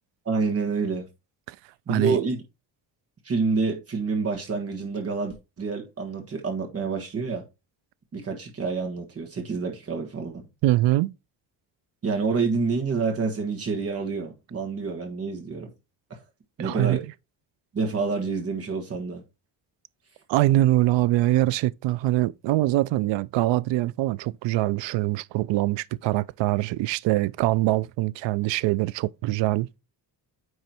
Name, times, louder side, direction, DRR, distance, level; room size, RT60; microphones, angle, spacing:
voice 1, 0.2-1.1 1.9-2.4 3.2-7.4 8.1-10.5 12.0-15.7 16.1-16.2 16.6-17.0 17.7-19.2, right 4 dB, 35° right, 1.5 m, -28 dB
voice 2, 1.9-2.2 10.6-11.1 16.6-17.0 20.3-29.7, right 17 dB, 85° right, 0.5 m, -23 dB
9.5 x 3.2 x 4.4 m
cardioid pair, 135°, 43 cm